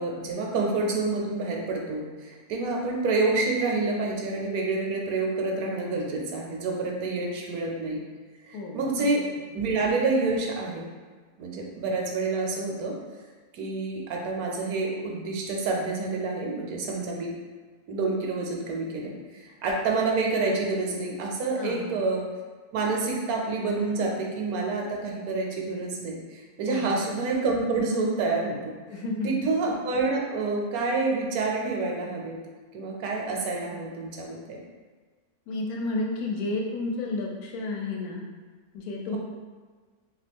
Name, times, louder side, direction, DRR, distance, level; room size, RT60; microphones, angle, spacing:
voice 1, 0.0-8.0 8.5-9.2 9.5-10.9 11.4-12.9 13.5-17.3 17.9-22.2 22.7-28.7 29.2-32.4 32.7-34.6, right 3 dB, 75° right, 0 dB, 1.1 m, -28 dB
voice 2, 8.5-9.1 21.6-21.9 26.7-27.0 28.9-29.5 35.5-38.2 38.7-39.2, left 3 dB, 90° left, 0 dB, 1.1 m, -31 dB
2.9 x 2.8 x 3.4 m, 1.5 s
omnidirectional pair, 1.6 m